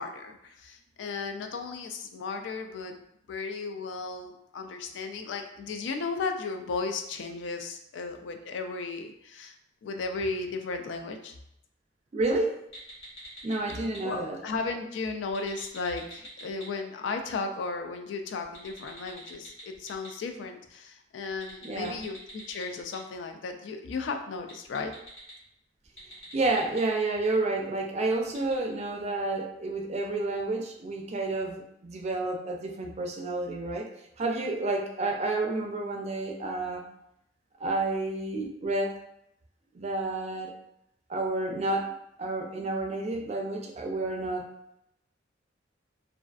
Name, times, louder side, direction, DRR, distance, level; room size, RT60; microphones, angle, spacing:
voice 1, 0.0-3.0 3.3-9.6 9.8-11.3 14.0-24.9, left 4 dB, 75° left, 5 dB, 0.3 m, -35 dB
voice 2, 12.1-12.6 13.4-14.4 21.6-22.0 26.3-33.9 34.2-36.8 37.6-38.9 39.7-40.5 41.1-44.5, right 2 dB, 35° right, 2 dB, 0.4 m, -30 dB
sound 1, 12.7-14.0 15.2-16.6 18.4-20.1 21.3-23.0 24.4-25.3 25.9-26.8 28.3-28.5, equal, 35° left, 1.3 m, -46 dB
2.4 x 2.3 x 2.3 m, 0.78 s
head